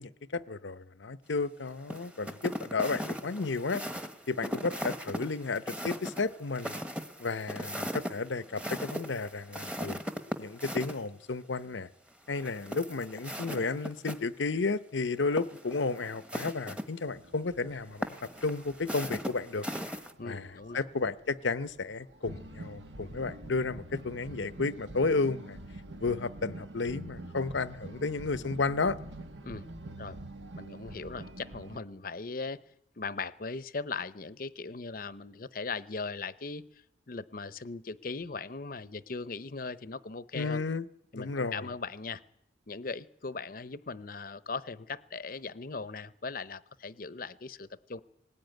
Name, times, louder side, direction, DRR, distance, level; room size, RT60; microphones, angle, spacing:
voice 1, 0.0-3.8 4.3-6.8 7.2-10.0 10.4-11.9 12.3-18.1 18.4-19.7 20.2-25.6 26.0-29.0 40.3-40.9 41.1-41.7, left 3 dB, 85° left, 14 dB, 0.8 m, -32 dB
sound 1, 1.9-11.0 12.3-14.2 14.5-14.6 15.2-16.8 18.0-20.1, equal, 5° right, 1.1 m, -38 dB
sound 2, 17.1-31.8, right 1 dB, 80° right, 1.7 m, -46 dB
voice 2, 20.2-20.9 29.4-29.6 30.0-30.2 30.6-32.6 33.0-36.6 37.1-40.6 41.1-42.2 42.7-48.0, left 4 dB, 50° left, 16 dB, 0.8 m, -39 dB
19.5 x 18.5 x 9.2 m, 0.78 s
head